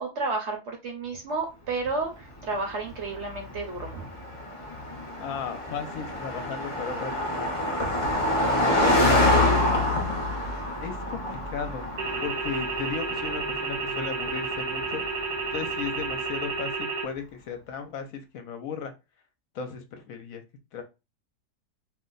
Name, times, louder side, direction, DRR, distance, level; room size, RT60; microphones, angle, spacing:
voice 1, 0.0-4.1, right 3 dB, 60° right, 3 dB, 0.8 m, -31 dB
Car passing by, 2.5-16.2, left 1 dB, 35° left, 0.5 m, -27 dB
voice 2, 5.2-7.6 8.7-9.3 10.8-11.9 12.2-15.0 15.5-18.9 19.5-20.4 20.7-20.8, left 6 dB, 70° left, 6 dB, 0.9 m, -36 dB
sound 1, 12.0-17.0, right 4 dB, 85° right, 1.3 m, -31 dB
2.7 x 2.1 x 3.8 m, 0.26 s
omnidirectional pair, 1.6 m